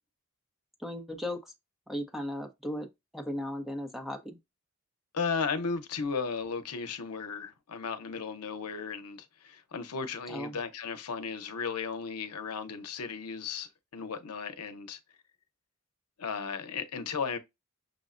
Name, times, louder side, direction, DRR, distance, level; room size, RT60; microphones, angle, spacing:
voice 1, 0.8-1.5 1.9-2.9 3.1-4.4 10.3-10.6, left 1 dB, ahead, 0.7 m, -36 dB
voice 2, 5.1-15.0 16.2-17.4, left 5 dB, 85° left, 0.7 m, -35 dB
6.2 x 2.1 x 2.4 m
head